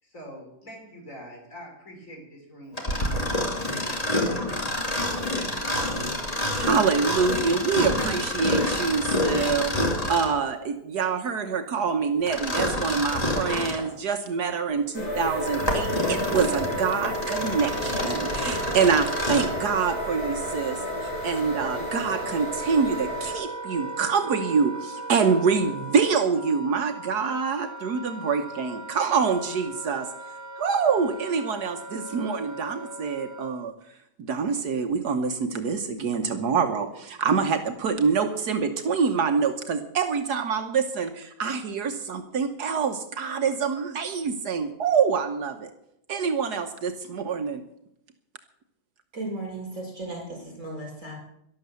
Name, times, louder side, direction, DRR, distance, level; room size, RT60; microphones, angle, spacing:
voice 1, 0.0-3.6, equal, 50° left, 1 dB, 4.6 m, -44 dB
Mechanisms, 2.7-10.4 12.3-13.9 14.4-14.5 15.2-19.6, left 1 dB, 20° left, 2.5 m, -28 dB
voice 2, 6.5-30.1 30.6-33.7 34.2-45.7 46.1-47.6, right 5 dB, 75° right, 6 dB, 1.6 m, -26 dB
sound 1, 14.9-23.3, left 1 dB, 85° left, 5.6 m, -32 dB
Wind instrument woodwind instrument, 14.9-33.7, right 2 dB, 20° right, 0.5 m, -38 dB
voice 3, 49.1-51.2, right 2 dB, 45° right, -1 dB, 6.2 m, -35 dB
12.5 x 12.0 x 6.9 m, 0.77 s
omnidirectional pair, 1.7 m